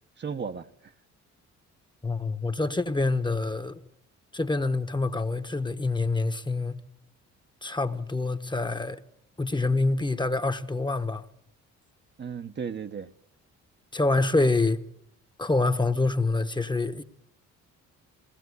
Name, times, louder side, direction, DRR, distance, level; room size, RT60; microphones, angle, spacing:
voice 1, 0.2-0.9 12.2-13.1, right 6 dB, 35° right, 0.9 m, -35 dB
voice 2, 2.0-3.8 4.3-6.8 7.6-9.0 9.4-11.2 13.9-14.8 15.4-17.0, left 3 dB, 15° left, 1.1 m, -26 dB
20.5 x 18.0 x 9.6 m
cardioid pair, 90°, 30 cm